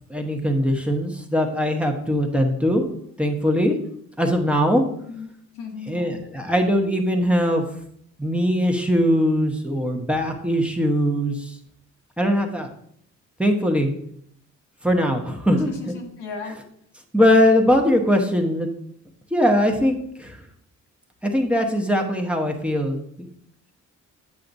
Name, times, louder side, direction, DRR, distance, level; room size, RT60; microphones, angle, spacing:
voice 1, 0.1-2.9 3.2-3.8 4.2-4.8 5.9-7.6 8.2-11.5 12.2-12.7 13.4-13.9 14.8-15.9 17.1-18.7 19.3-20.4 21.2-23.0, equal, 5° right, 2 dB, 0.9 m, -21 dB
voice 2, 5.0-6.2 15.6-16.6, left 4 dB, 90° left, 1 dB, 1.4 m, -36 dB
8.4 x 5.7 x 2.6 m, 0.69 s
cardioid pair, 90°, 30 cm